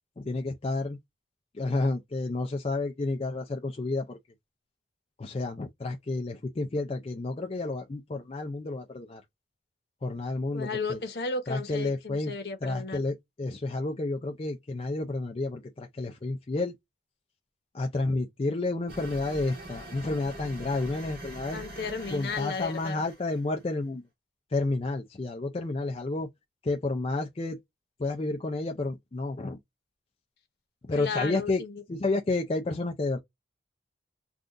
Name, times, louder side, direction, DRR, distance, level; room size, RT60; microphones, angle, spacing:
voice 1, 0.2-1.0 1.5-4.2 5.2-9.2 10.0-11.0 11.5-12.3 12.6-16.7 17.7-21.6 22.1-24.0 24.5-26.3 26.6-27.6 28.0-29.6 30.9-31.6 31.9-33.2, left 2 dB, 30° left, 0.4 m, -30 dB
voice 2, 10.5-13.0 21.5-23.0 30.9-31.8, left 4 dB, 60° left, 1.0 m, -34 dB
sound 1, 18.9-23.6, right 1 dB, 55° right, 1.8 m, -44 dB
3.6 x 2.5 x 2.5 m
head